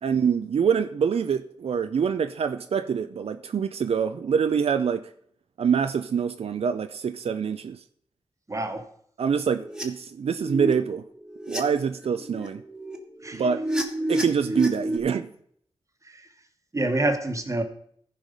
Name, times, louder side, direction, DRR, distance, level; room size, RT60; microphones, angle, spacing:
voice 1, 0.0-5.1 5.6-7.8 9.2-11.0 11.5-12.6 13.3-13.6 14.1-15.3, right 6 dB, 80° right, 9 dB, 0.5 m, -25 dB
voice 2, 8.5-8.9 13.2-13.4 16.0-16.3 16.7-17.6, right 2 dB, 30° right, 7 dB, 1.2 m, -27 dB
sound 1, 9.6-9.8 10.3-10.7 11.2-11.6 12.0-15.0, right 1 dB, 5° right, 1.5 m, -30 dB
14.5 x 4.9 x 5.3 m, 0.65 s
wide cardioid pair, 80°, 10 cm